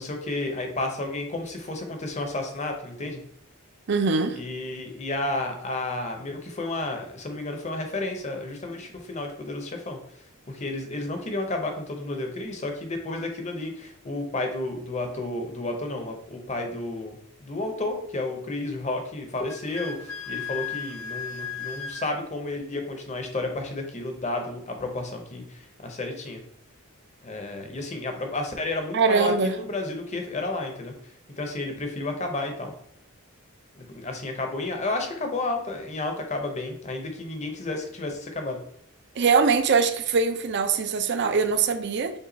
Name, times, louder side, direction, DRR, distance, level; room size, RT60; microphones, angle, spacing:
voice 1, 0.0-3.2 4.3-10.0 10.5-26.4 27.2-30.9 31.4-32.7 33.8-38.6, left 2 dB, 30° left, 0.8 m, -31 dB
voice 2, 3.9-4.4 28.9-29.6 39.2-42.1, right 5 dB, 50° right, 0.5 m, -22 dB
Wind instrument woodwind instrument, 19.5-22.1, left 6 dB, 70° left, 0.7 m, -35 dB
5.4 x 2.4 x 4.0 m
head